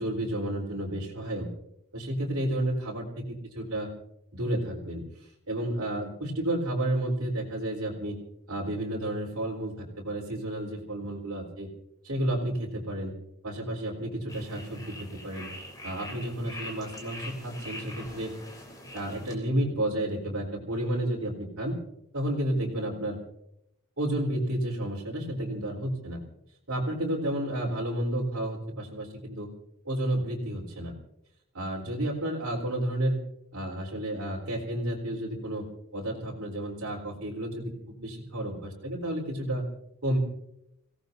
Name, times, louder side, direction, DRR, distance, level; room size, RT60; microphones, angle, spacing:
voice 1, 0.0-1.5 1.9-3.2 3.5-3.9 4.3-5.0 5.5-8.2 8.5-11.7 12.0-13.1 13.4-15.5 15.8-18.3 18.9-21.8 22.1-23.2 24.0-26.2 26.7-29.5 29.8-30.9 31.5-33.2 33.5-35.7 35.9-39.6 40.0-40.2, right 1 dB, 70° right, -3 dB, 3.9 m, -31 dB
sound 1, 14.3-19.3, left 1 dB, 15° left, 3.2 m, -43 dB
29.5 x 17.0 x 2.7 m, 0.79 s
head